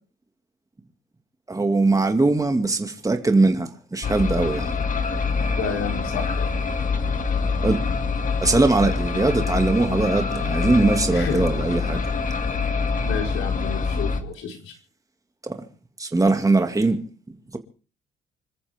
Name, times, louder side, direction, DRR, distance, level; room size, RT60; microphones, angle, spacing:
voice 1, 1.5-4.9 7.6-7.8 8.4-12.0 15.4-15.6 16.0-17.0 17.3-17.6, right 3 dB, 15° right, 2.3 m, -21 dB
sound 1, 4.0-14.2, left 4 dB, 40° left, 2.2 m, -25 dB
voice 2, 5.5-6.5 11.1-11.4 13.0-14.7, left 6 dB, 80° left, 4.9 m, -30 dB
26.5 x 14.0 x 3.6 m
cardioid pair, 90°, 20 cm